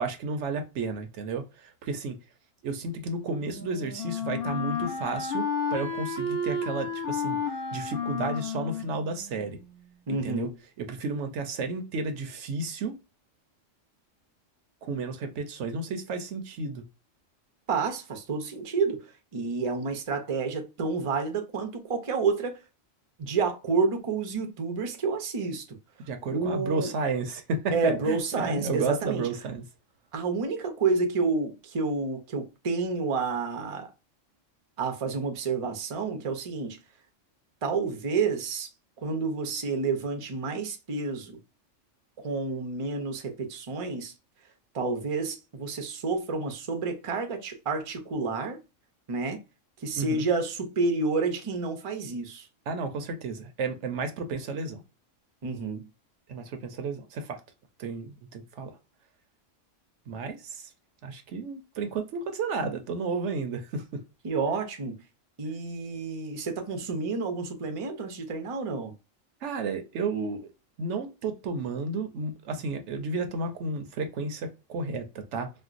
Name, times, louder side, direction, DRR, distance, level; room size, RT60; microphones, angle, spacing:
voice 1, 0.0-2.2 2.6-7.4 7.7-9.6 10.1-10.5 10.8-12.9 14.8-16.8 26.1-29.6 50.0-50.3 52.7-54.8 56.3-57.4 57.8-58.7 60.1-60.7 61.0-64.0 69.4-70.5 70.8-75.5, right 3 dB, 70° right, 0.9 m, -32 dB
Wind instrument woodwind instrument, 3.0-9.9, left 4 dB, 45° left, 1.1 m, -32 dB
voice 2, 10.1-10.5 17.7-22.6 23.2-25.7 26.3-26.9 27.7-29.3 30.1-33.9 34.8-36.8 37.6-38.7 39.0-41.4 42.2-44.1 44.7-48.6 49.1-49.4 49.8-52.5 55.4-55.9 64.2-65.0 65.4-68.9, right 4 dB, 40° right, 0.5 m, -29 dB
4.3 x 2.2 x 2.4 m
omnidirectional pair, 1.3 m